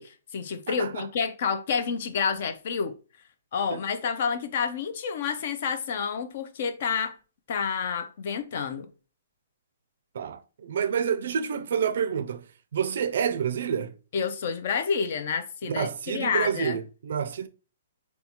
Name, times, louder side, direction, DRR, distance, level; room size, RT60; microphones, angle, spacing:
voice 1, 0.0-2.9 3.5-7.2 7.5-8.9 14.1-16.8, left 6 dB, 50° left, 0.5 m, -29 dB
voice 2, 0.7-1.0 3.7-3.8 10.1-12.4 12.7-13.9 15.6-17.5, right 7 dB, 60° right, 0.4 m, -28 dB
3.9 x 2.3 x 2.8 m
hypercardioid pair, 160°, 0 cm